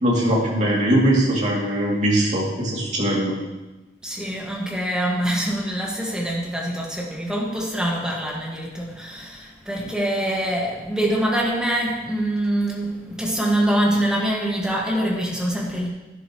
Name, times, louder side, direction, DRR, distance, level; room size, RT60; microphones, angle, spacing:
voice 1, 0.0-3.3, right 1 dB, 40° right, 2.9 m, -21 dB
voice 2, 4.0-15.9, right 1 dB, 5° right, 1.9 m, -24 dB
11.5 x 10.5 x 3.2 m
head